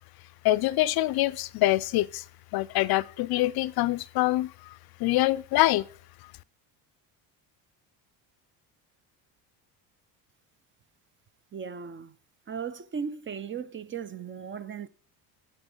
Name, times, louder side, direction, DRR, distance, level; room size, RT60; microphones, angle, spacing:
voice 1, 0.4-2.2 2.5-5.9, left 17 dB, 55° left, 0.5 m, -25 dB
voice 2, 11.5-12.2 12.5-14.9, right 6 dB, 25° right, 0.5 m, -37 dB
9.8 x 8.1 x 3.8 m
supercardioid pair, 90°, 46 cm